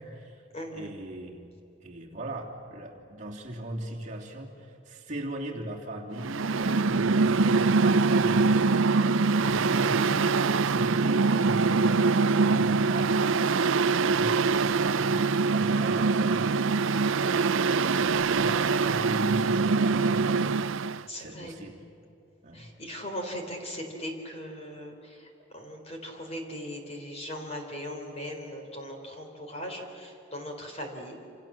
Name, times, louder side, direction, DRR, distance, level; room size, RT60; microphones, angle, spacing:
voice 1, 0.0-0.4 0.7-1.5 1.8-8.7 9.3-10.2 10.5-13.2 14.0-17.2 17.9-20.6 21.2-21.8 22.4-22.7, right 1 dB, 35° right, -2 dB, 3.0 m, -39 dB
voice 2, 0.5-0.9 18.1-18.4 21.1-21.6 22.5-31.2, equal, 30° left, 3 dB, 3.9 m, -39 dB
Mechanical fan, 6.2-21.0, right 4 dB, 70° right, 0.6 m, -24 dB
28.0 x 27.5 x 7.5 m, 2.8 s
head